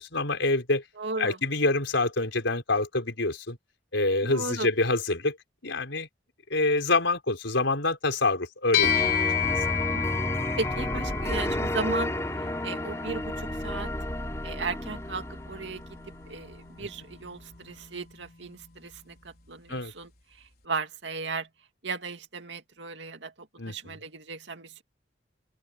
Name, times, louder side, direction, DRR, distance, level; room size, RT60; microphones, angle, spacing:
voice 1, 0.0-0.8 1.2-3.6 3.9-5.4 5.6-6.1 6.5-9.2 16.8-16.9 19.7-19.9 23.6-24.0, left 2 dB, 80° left, 4.5 m, -26 dB
voice 2, 1.0-1.4 4.2-4.7 9.9-12.1 12.4-13.9 14.4-15.8 16.3-21.5 21.8-24.8, right 3 dB, 70° right, 2.5 m, -36 dB
sound 1, 8.7-18.3, left 9 dB, 55° left, 5.1 m, -33 dB
sound 2, 8.8-16.4, left 1 dB, 15° left, 4.6 m, -31 dB
open air
head